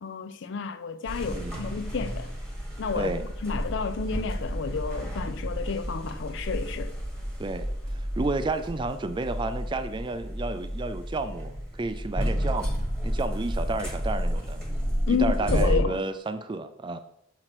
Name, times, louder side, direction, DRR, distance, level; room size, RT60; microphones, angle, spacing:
voice 1, 0.0-2.3 2.8-3.1 3.4-6.9 15.1-16.0, left 5 dB, 60° left, 0.4 m, -30 dB
sound 1, 1.0-15.8, equal, 5° left, 1.3 m, -31 dB
voice 2, 1.3-1.6 3.0-3.2 7.4-12.8 13.0-14.6 15.1-17.0, right 2 dB, 25° right, 0.3 m, -31 dB
6.5 x 3.0 x 5.8 m
head